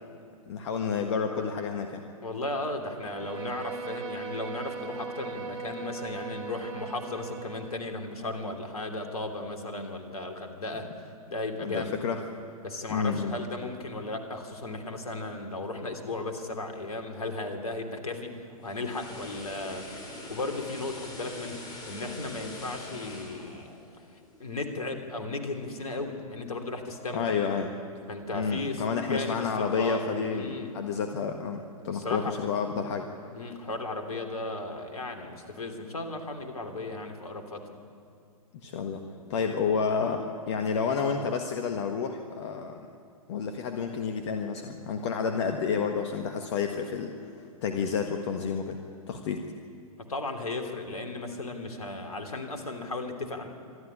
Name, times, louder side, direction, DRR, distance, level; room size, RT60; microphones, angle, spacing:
voice 1, 0.5-2.0 11.6-12.2 12.9-13.3 27.1-27.7 28.3-33.1 38.6-39.0 39.3-42.8 43.3-47.1 47.6-48.8 49.1-49.5, left 6 dB, 50° left, 5 dB, 1.5 m, -30 dB
voice 2, 2.2-10.9 11.3-12.0 12.6-19.8 20.3-23.7 24.4-27.3 28.1-28.8 29.1-30.0 30.3-30.7 31.9-32.4 33.3-37.7 50.0-53.5, left 2 dB, 70° left, 5 dB, 3.1 m, -35 dB
Bowed string instrument, 2.9-7.9, right 5 dB, 55° right, 3.8 m, -39 dB
sound 1, 18.4-24.6 25.0-25.2, left 2 dB, 20° left, 5.6 m, -44 dB
26.0 x 12.5 x 9.8 m, 2.3 s
figure-of-eight pair, 110°, 19 cm